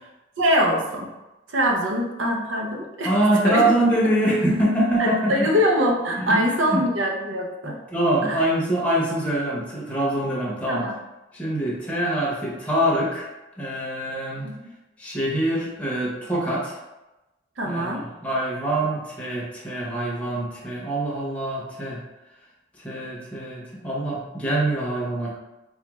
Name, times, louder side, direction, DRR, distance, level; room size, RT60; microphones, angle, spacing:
voice 1, 0.4-1.1 1.5-3.1 3.4-3.6 5.0-7.8 8.2-8.5 10.7-11.0 14.4-14.6 17.6-18.0, equal, 85° right, 1 dB, 0.7 m, -23 dB
voice 2, 3.0-5.5 6.1-6.8 7.9-10.9 11.3-13.3 13.6-14.4 15.0-16.8 17.6-22.0 22.8-25.3, right 1 dB, 5° left, -5 dB, 0.8 m, -24 dB
4.2 x 2.4 x 3.0 m, 1.0 s
head